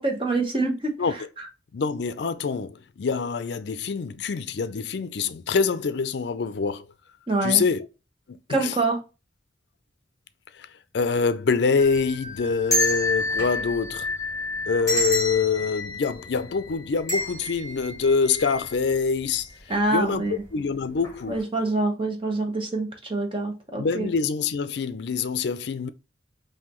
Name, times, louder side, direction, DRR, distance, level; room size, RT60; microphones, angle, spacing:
voice 1, 0.0-1.5 7.3-7.6 8.5-9.0 19.7-20.3 21.3-24.1, right 2 dB, 30° right, 1.1 m, -26 dB
voice 2, 1.7-6.8 7.4-7.9 8.5-8.7 10.9-14.1 14.7-19.5 19.9-21.4 23.8-25.9, left 5 dB, 65° left, 0.4 m, -25 dB
sound 1, 11.8-19.0 19.3-19.4 20.3-20.6 21.0-21.2, left 1 dB, 15° left, 2.1 m, -29 dB
5.6 x 2.7 x 3.0 m
head